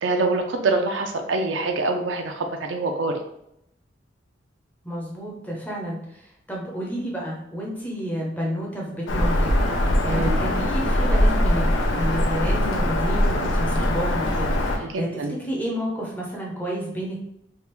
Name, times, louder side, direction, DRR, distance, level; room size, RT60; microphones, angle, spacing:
voice 1, 0.0-3.2 10.1-10.4 14.9-15.4, right 3 dB, 80° right, 4 dB, 0.5 m, -25 dB
voice 2, 4.8-17.2, equal, 10° left, -3 dB, 0.7 m, -30 dB
Bird vocalization bird call bird song, 9.1-14.8, left 1 dB, 85° left, 0.5 m, -21 dB
3.5 x 2.4 x 3.0 m, 0.79 s
head